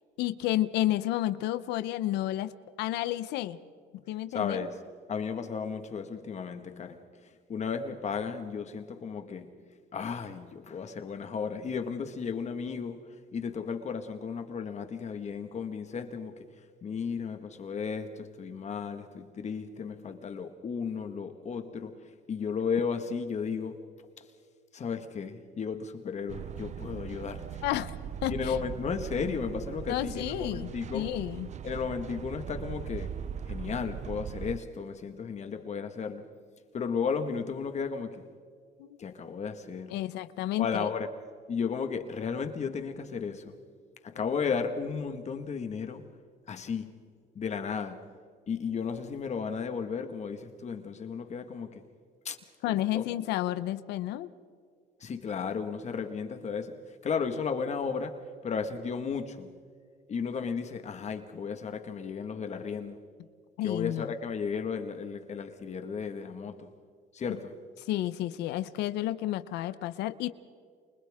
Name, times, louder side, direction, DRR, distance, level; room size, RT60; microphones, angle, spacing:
voice 1, 0.2-2.5 2.8-3.6 4.1-4.7 27.6-28.0 28.2-28.6 29.9-31.5 38.8-39.0 39.9-40.9 52.6-54.3 63.6-64.1 67.9-70.3, left 14 dB, 90° left, 0.9 m, -31 dB
voice 2, 4.3-4.8 5.1-9.6 9.9-24.3 24.7-27.6 28.3-31.2 31.6-33.2 33.5-36.3 36.7-38.3 39.0-40.0 40.6-41.1 41.5-43.6 44.0-46.1 46.5-47.0 47.4-48.1 48.5-51.8 52.3-52.4 52.6-53.1 55.0-59.5 60.1-63.0 63.6-66.7 67.1-67.6, left 6 dB, 40° left, 1.8 m, -34 dB
sound 1, 26.3-34.6, right 8 dB, 45° right, 0.7 m, -39 dB
29.5 x 29.0 x 3.7 m
cardioid pair, 110°, 17 cm